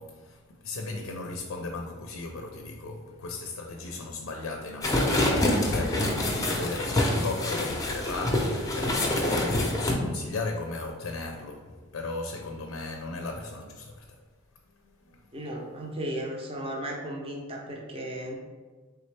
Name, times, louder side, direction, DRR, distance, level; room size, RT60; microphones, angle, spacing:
voice 1, 0.0-14.2 14.8-15.3, left 3 dB, 80° left, 0.5 m, -37 dB
sound 1, 4.8-9.9, left 1 dB, 15° left, 0.6 m, -26 dB
voice 2, 15.3-18.4, right 1 dB, 25° right, 0.6 m, -35 dB
4.2 x 3.4 x 3.2 m
head